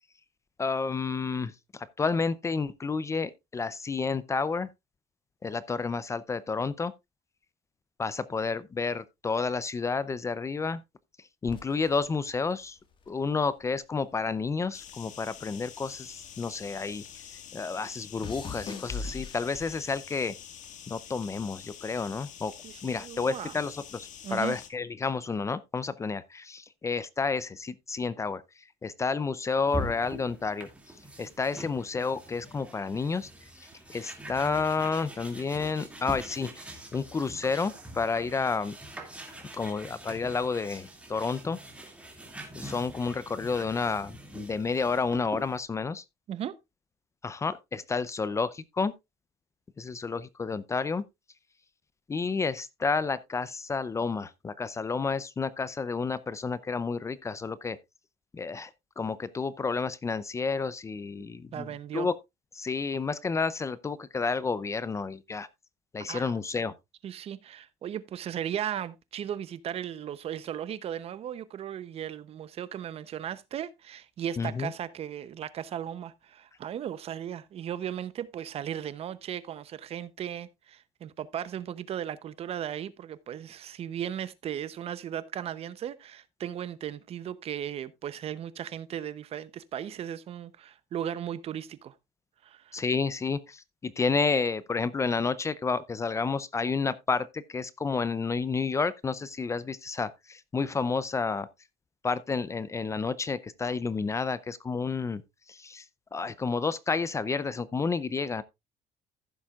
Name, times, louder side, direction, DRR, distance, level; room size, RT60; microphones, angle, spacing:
voice 1, 0.6-4.7 5.4-6.9 8.0-10.8 11.4-12.8 13.1-20.3 20.9-22.5 22.8-28.4 28.8-30.7 31.2-33.3 33.6-38.8 39.5-41.6 42.5-46.0 47.2-48.9 49.8-51.0 52.1-57.8 58.3-58.7 59.0-61.7 61.9-62.1 62.5-65.5 65.9-66.7 74.4-74.7 92.7-101.5 102.0-105.2 105.5-105.8 106.1-108.4, left 4 dB, 20° left, 0.5 m, -30 dB
sound 1, 11.5-14.0 14.2-16.9 17.2-20.0 20.7-21.1, left 4 dB, 35° left, 1.7 m, -42 dB
sound 2, 14.7-24.7, left 9 dB, 60° left, 1.7 m, -47 dB
voice 2, 22.6-23.6 24.2-24.6 46.3-46.6 61.5-62.1 66.1-66.3 67.0-91.9 92.4-92.8, right 10 dB, 45° right, 0.7 m, -36 dB
sound 3, 29.7-45.6, right 1 dB, 10° right, 2.3 m, -43 dB
15.0 x 7.2 x 2.4 m
cardioid pair, 130°, 14 cm